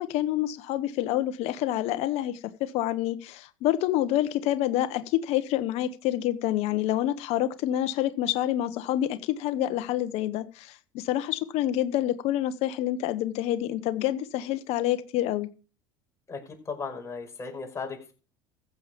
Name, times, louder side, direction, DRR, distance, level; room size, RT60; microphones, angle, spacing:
voice 1, 0.0-15.5, left 13 dB, 65° left, 1.2 m, -27 dB
voice 2, 16.3-18.1, left 4 dB, 25° left, 5.4 m, -36 dB
15.0 x 7.3 x 5.2 m
supercardioid pair, 90°, 12 cm